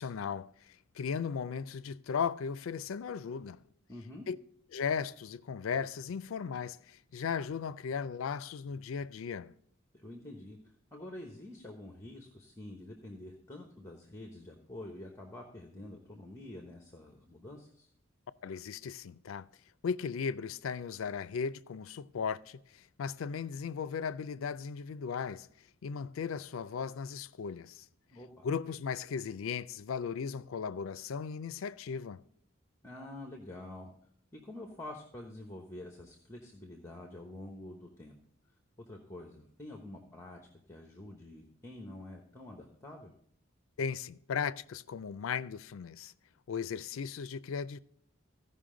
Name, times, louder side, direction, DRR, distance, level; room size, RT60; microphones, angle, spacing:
voice 1, 0.0-3.6 4.3-4.4 4.7-9.5 18.4-19.5 19.8-25.5 25.8-27.8 28.4-32.2 43.8-46.1 46.5-47.8, left 6 dB, 85° left, 0.4 m, -36 dB
voice 2, 3.9-4.3 9.9-17.9 28.1-28.4 32.8-33.9 34.3-38.2 38.8-43.1, left 1 dB, 15° left, 1.0 m, -47 dB
15.5 x 5.5 x 3.8 m
head